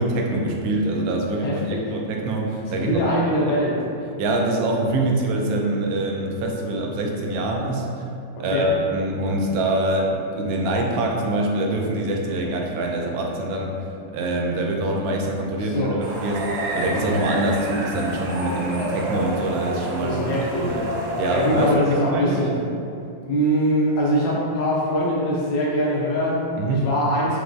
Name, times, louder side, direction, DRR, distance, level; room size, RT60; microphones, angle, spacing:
voice 1, 0.0-2.9 3.5-3.6 4.2-7.9 8.4-13.7 14.1-20.3 20.6-20.9 21.2-21.7 22.1-22.4 26.6-26.9, right 1 dB, 85° right, 0 dB, 1.3 m, -24 dB
voice 2, 1.4-1.9 2.7-3.8 8.5-8.7 15.6-15.9 20.0-20.8 21.3-22.5 23.2-26.4 26.7-27.4, equal, 80° left, -5 dB, 1.6 m, -22 dB
sound 1, 16.0-21.8, right 1 dB, 65° right, 1.1 m, -29 dB
4.7 x 2.9 x 2.5 m, 2.5 s
omnidirectional pair, 2.1 m